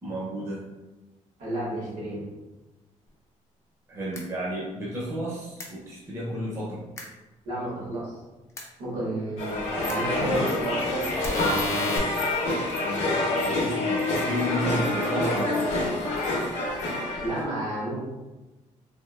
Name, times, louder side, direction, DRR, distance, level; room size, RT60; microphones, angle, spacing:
voice 1, 0.0-0.6 3.9-6.9 11.4-12.4 13.4-15.7, equal, 20° right, -6 dB, 0.6 m, -32 dB
voice 2, 1.4-2.2 7.4-8.2 8.8-11.1 12.8-13.0 17.2-18.0, right 1 dB, 75° right, -7 dB, 1.5 m, -31 dB
sound 1, 4.1-4.2 5.6-5.7 7.0-7.1 8.6-8.7 9.9-10.0 11.2-12.0, left 2 dB, 20° left, 0.5 m, -30 dB
sound 2, 9.4-17.4, left 2 dB, 60° left, 0.7 m, -27 dB
3.4 x 2.5 x 2.3 m, 1.1 s
cardioid pair, 170°, 13 cm